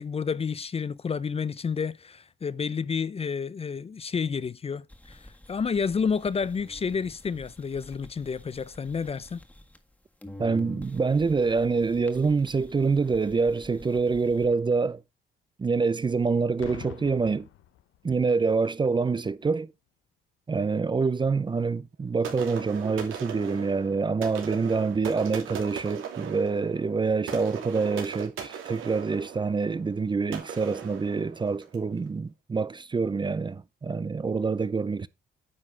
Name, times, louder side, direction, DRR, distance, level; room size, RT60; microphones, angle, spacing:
voice 1, 0.0-9.4, left 6 dB, 30° left, 0.5 m, -30 dB
sound 1, 4.9-9.9 10.2-14.4, left 1 dB, 5° left, 1.7 m, -48 dB
voice 2, 10.4-15.0 15.6-17.5 18.0-19.7 20.5-35.1, right 4 dB, 25° right, 0.6 m, -26 dB
Boom, 16.6-18.3 19.2-19.5, left 12 dB, 85° left, 0.8 m, -46 dB
sound 2, 22.2-31.9, right 8 dB, 85° right, 2.9 m, -39 dB
9.7 x 5.5 x 3.8 m
cardioid pair, 90°, 20 cm